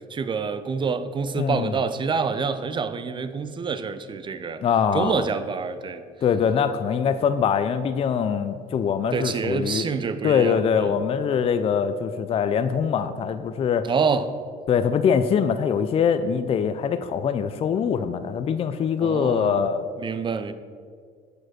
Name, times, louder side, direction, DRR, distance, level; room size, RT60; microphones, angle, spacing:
voice 1, 0.1-4.6 4.9-6.0 9.1-11.0 13.9-14.3 19.0-19.6 20.0-20.5, right 5 dB, 30° right, 11 dB, 0.5 m, -27 dB
voice 2, 1.4-1.7 4.6-5.3 6.2-9.9 10.2-13.9 14.7-19.9, left 7 dB, 35° left, 10 dB, 0.4 m, -23 dB
6.5 x 4.8 x 6.1 m, 2.1 s
cardioid pair, 110°, 17 cm